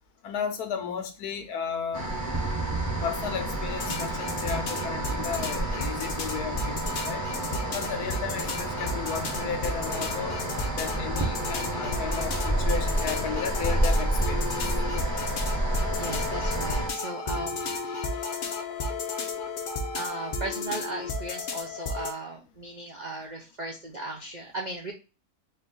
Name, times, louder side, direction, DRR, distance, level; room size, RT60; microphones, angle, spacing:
voice 1, 0.2-2.1 3.0-7.3 7.6-10.4 10.8-14.8, left 7 dB, 90° left, 6 dB, 1.3 m, -34 dB
sound 1, 1.9-16.9, right 1 dB, 15° right, 0.8 m, -30 dB
sound 2, 3.8-22.1, left 3 dB, 60° left, 0.5 m, -33 dB
voice 2, 15.9-18.1 19.9-24.9, right 2 dB, 65° right, 1 dB, 0.4 m, -37 dB
4.4 x 2.4 x 3.7 m, 0.32 s
omnidirectional pair, 1.6 m